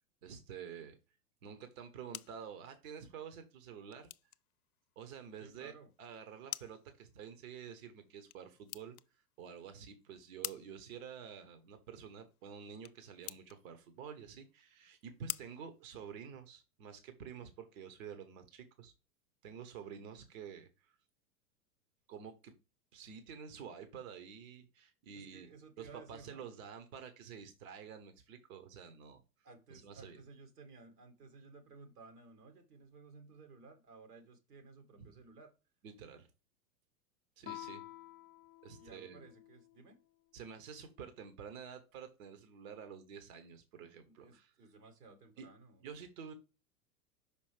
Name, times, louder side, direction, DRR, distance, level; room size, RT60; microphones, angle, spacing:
voice 1, 0.2-1.0 1.4-4.1 4.9-9.0 9.4-18.9 19.4-20.9 22.1-22.5 22.9-25.5 25.8-29.2 29.7-30.2 35.0-35.1 35.8-36.3 37.4-37.8 38.6-39.2 40.3-44.5 45.4-45.5 45.8-46.3, right 7 dB, 60° right, 1.4 m, -49 dB
sound 1, 1.7-16.6, left 15 dB, 70° left, 0.6 m, -51 dB
voice 2, 5.4-5.9 25.1-26.4 29.4-35.5 37.5-37.6 38.8-40.0 44.0-45.9, right 4 dB, 75° right, 2.1 m, -56 dB
Guitar, 37.4-39.9, left 17 dB, 20° left, 0.5 m, -50 dB
5.6 x 5.1 x 3.4 m
hypercardioid pair, 100°, 46 cm